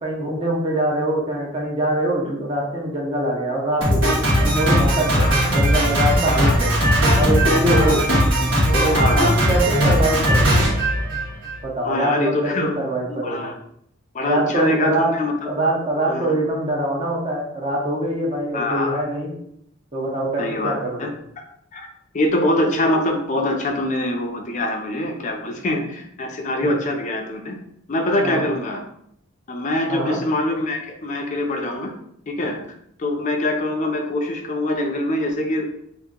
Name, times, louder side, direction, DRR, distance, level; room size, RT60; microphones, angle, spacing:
voice 1, 0.0-4.2 4.4-6.7 7.2-8.0 8.8-10.6 11.6-13.4 14.3-15.1 15.5-19.3 19.9-21.0 28.2-28.5 29.9-30.2, right 1 dB, 30° right, -2 dB, 0.6 m, -23 dB
Drum kit, 3.8-11.6, equal, 70° right, 1.4 m, -18 dB
voice 2, 5.1-5.5 6.3-6.6 7.7-8.0 8.9-9.4 11.8-12.7 13.1-13.5 14.1-15.5 16.1-16.3 18.5-19.0 20.4-21.1 21.7-21.9 22.1-27.6 27.9-28.8 29.5-31.9 32.3-32.6 33.0-35.7, left 1 dB, 35° left, 3 dB, 0.4 m, -24 dB
2.8 x 2.6 x 3.6 m, 0.73 s
head